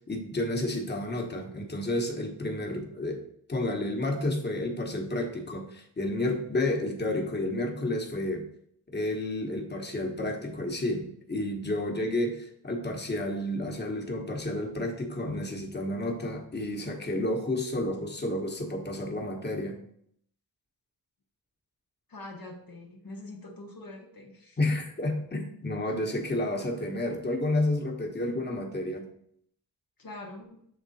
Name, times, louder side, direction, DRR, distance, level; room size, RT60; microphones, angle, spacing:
voice 1, 0.1-3.2 3.5-8.5 8.9-19.8 24.6-29.1, left 1 dB, 25° left, 2 dB, 1.1 m, -31 dB
voice 2, 22.1-24.6 30.0-30.7, left 2 dB, 55° left, 1 dB, 0.9 m, -44 dB
7.0 x 3.6 x 4.1 m, 0.68 s
wide cardioid pair, 115°, 41 cm